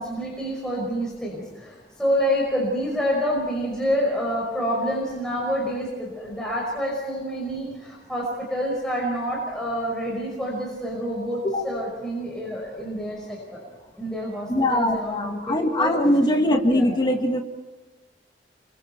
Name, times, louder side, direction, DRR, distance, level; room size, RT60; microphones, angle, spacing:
voice 1, 0.0-13.6 14.0-15.9 16.6-16.9, equal, 5° left, -4 dB, 5.5 m, -27 dB
voice 2, 14.5-17.4, left 1 dB, 25° left, 3 dB, 2.0 m, -21 dB
29.0 x 24.0 x 4.6 m, 1.2 s
head